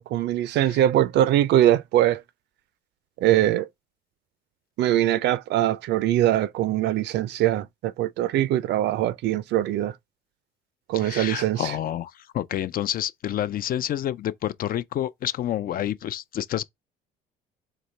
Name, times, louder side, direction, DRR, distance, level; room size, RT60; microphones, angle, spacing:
voice 1, 0.0-2.2 3.2-3.7 4.8-9.9 10.9-11.7, right 13 dB, 65° right, 0.5 m, -22 dB
voice 2, 10.9-16.6, left 11 dB, 50° left, 0.5 m, -29 dB
4.1 x 3.0 x 3.2 m
supercardioid pair, 75°, 19 cm